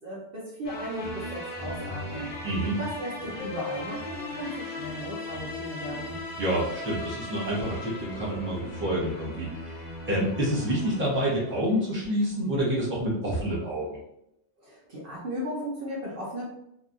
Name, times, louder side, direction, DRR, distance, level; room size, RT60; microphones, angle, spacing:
voice 1, 0.0-2.3 2.8-6.1 14.6-16.4, equal, 55° right, -6 dB, 0.9 m, -36 dB
sound 1, 0.6-12.0, left 1 dB, 50° left, 0.6 m, -38 dB
voice 2, 2.4-2.8 6.4-14.0, equal, 10° right, -7 dB, 0.9 m, -28 dB
3.1 x 2.5 x 2.5 m, 0.79 s
omnidirectional pair, 1.2 m